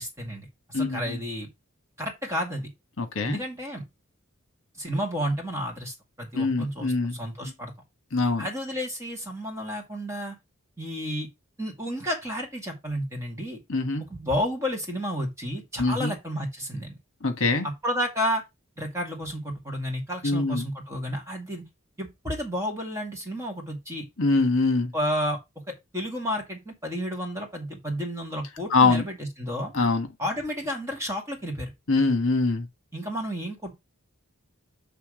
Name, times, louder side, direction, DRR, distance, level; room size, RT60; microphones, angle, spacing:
voice 1, 0.0-1.5 2.0-2.7 3.2-3.8 4.8-7.7 8.4-10.4 10.8-11.3 11.6-13.6 14.1-17.0 17.6-18.4 18.8-21.6 22.0-24.1 24.9-25.4 25.7-29.7 30.2-31.7 32.9-33.7, equal, 15° right, 2.1 m, -31 dB
voice 2, 0.7-1.2 3.0-3.4 6.3-7.2 8.1-8.5 13.7-14.0 15.8-16.1 17.2-17.7 20.2-20.7 24.2-24.9 28.7-29.0 29.7-30.1 31.9-32.7, left 3 dB, 60° left, 1.4 m, -23 dB
8.4 x 3.5 x 5.0 m
head